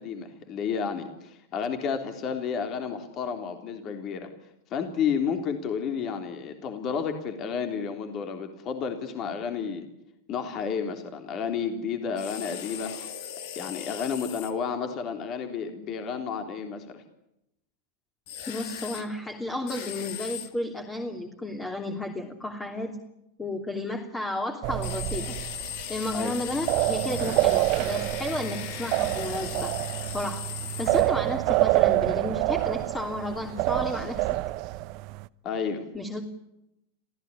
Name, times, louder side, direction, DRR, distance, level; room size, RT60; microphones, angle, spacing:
voice 1, 0.0-4.3 4.7-9.9 10.3-12.9 13.6-17.0 26.1-26.3 35.4-35.8, left 6 dB, 40° left, 6 dB, 3.6 m, -31 dB
sound 1, 12.2-14.5 18.3-19.1 19.7-20.5 24.8-31.1, left 10 dB, 65° left, 2.9 m, -38 dB
voice 2, 18.5-23.0 23.4-25.4 25.9-29.8 30.1-30.4 30.8-34.4 35.9-36.2, left 1 dB, 15° left, 4 dB, 3.1 m, -32 dB
sound 2, 24.6-35.3, right 20 dB, 55° right, 0.8 m, -27 dB
27.0 x 16.5 x 10.0 m, 0.85 s
hypercardioid pair, 105°, 0 cm